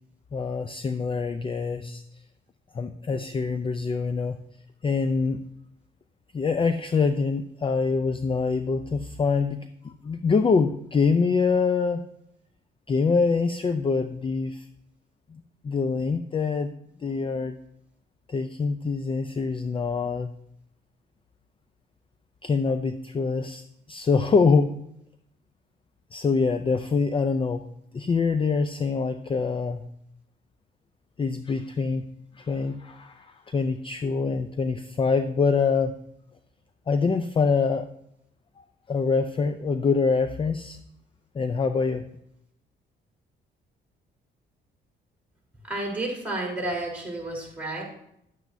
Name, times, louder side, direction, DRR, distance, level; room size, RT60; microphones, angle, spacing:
voice 1, 0.3-2.0 2.7-4.4 4.8-5.4 6.3-12.0 12.9-14.7 15.3-16.7 17.0-17.6 18.3-20.3 22.4-23.6 23.9-24.7 26.1-27.7 27.9-29.8 31.2-32.1 32.4-36.0 36.9-37.9 38.6-40.8 41.3-42.1, left 4 dB, 25° left, 10 dB, 0.4 m, -25 dB
voice 2, 45.6-47.8, right 2 dB, 5° right, -2 dB, 3.6 m, -31 dB
10.5 x 8.1 x 2.7 m, 0.75 s
cardioid pair, 90°, 20 cm